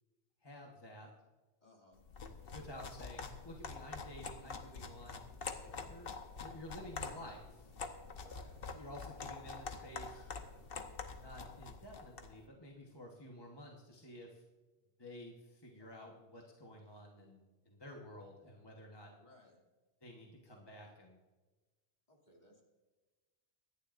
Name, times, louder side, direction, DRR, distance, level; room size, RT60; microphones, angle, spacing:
voice 1, 0.4-1.1 2.4-5.2 5.8-6.1 6.4-7.7 8.7-10.2 11.1-14.4 15.0-19.1 20.0-21.2, left 1 dB, 25° left, 0 dB, 1.2 m, -52 dB
voice 2, 1.6-2.0 5.4-5.7 8.2-8.6 15.8-15.9 19.2-19.6 22.1-22.6, left 1 dB, 40° left, -1 dB, 2.6 m, -62 dB
sound 1, 2.0-12.4, left 4 dB, 60° left, 1.2 m, -46 dB
24.5 x 10.5 x 2.5 m, 1.3 s
omnidirectional pair, 1.1 m